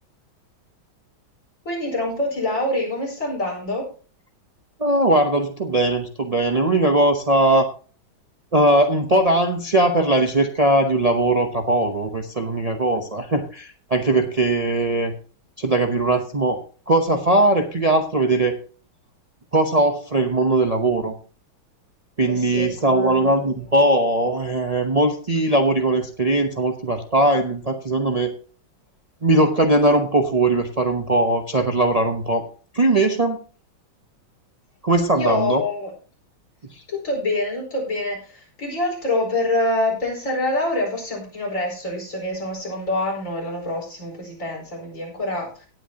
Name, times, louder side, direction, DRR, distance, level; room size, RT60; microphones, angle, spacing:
voice 1, 1.7-3.9 22.3-23.3 35.1-35.9 36.9-45.7, left 1 dB, 40° left, -1 dB, 5.3 m, -26 dB
voice 2, 4.8-7.7 8.5-15.1 15.6-18.6 19.5-21.1 22.2-28.3 29.2-32.4 32.7-33.4 34.8-35.6, right 2 dB, 80° right, 4 dB, 0.3 m, -20 dB
18.0 x 9.0 x 2.9 m, 0.39 s
omnidirectional pair, 2.2 m